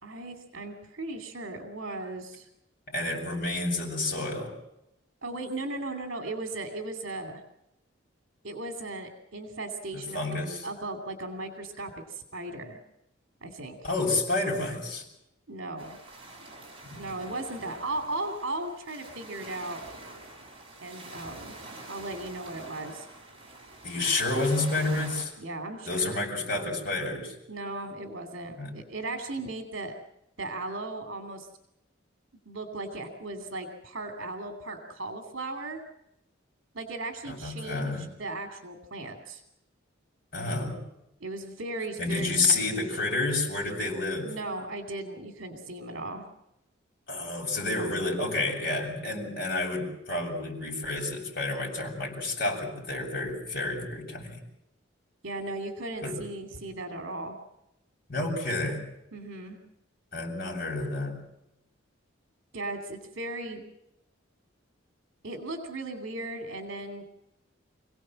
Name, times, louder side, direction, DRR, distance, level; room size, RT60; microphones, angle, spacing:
voice 1, 0.0-2.5 5.2-7.4 8.4-10.2 10.6-12.8 13.4-13.8 15.5-16.0 17.0-19.8 20.8-21.5 21.9-23.1 25.4-26.2 27.5-29.9 30.4-31.5 32.5-35.8 36.7-39.4 41.2-43.0 44.2-46.2 55.2-57.4 59.1-59.6 62.5-63.6 65.2-67.0, right 2 dB, 65° right, 4 dB, 2.6 m, -37 dB
voice 2, 2.9-4.5 9.9-10.6 13.8-15.0 23.8-25.3 25.9-27.3 28.6-28.7 37.3-38.0 40.3-40.8 42.0-44.3 47.1-54.4 56.0-56.2 58.1-58.8 60.1-61.1, left 2 dB, 45° left, -1 dB, 7.3 m, -29 dB
sound 1, 15.8-25.2, right 2 dB, 25° right, 5.1 m, -46 dB
27.0 x 17.0 x 7.6 m, 0.86 s
head